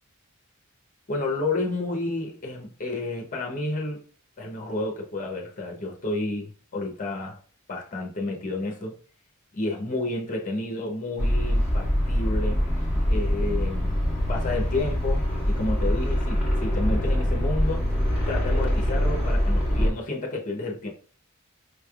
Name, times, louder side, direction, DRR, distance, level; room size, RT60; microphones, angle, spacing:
voice 1, 1.1-4.0 4.4-7.4 7.7-9.0 9.5-12.6 13.0-14.0 14.3-17.9 18.3-20.9, left 2 dB, 40° left, 0.8 m, -30 dB
sound 1, 11.2-19.9, equal, 10° right, 1.6 m, -24 dB
5.1 x 3.3 x 2.3 m
head